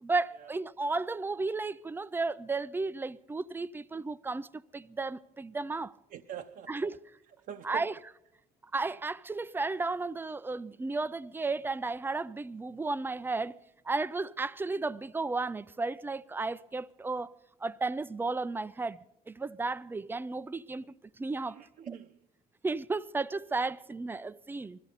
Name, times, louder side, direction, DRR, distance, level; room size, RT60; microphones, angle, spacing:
voice 1, 0.0-5.9 6.7-7.0 7.6-7.9 8.7-13.6 13.9-21.6 22.6-24.8, right 3 dB, 10° right, 0.4 m, -34 dB
voice 2, 6.1-6.9 7.5-7.9 21.5-22.2, right 9 dB, 60° right, 0.7 m, -44 dB
21.0 x 14.5 x 4.0 m
cardioid pair, 110°, 17 cm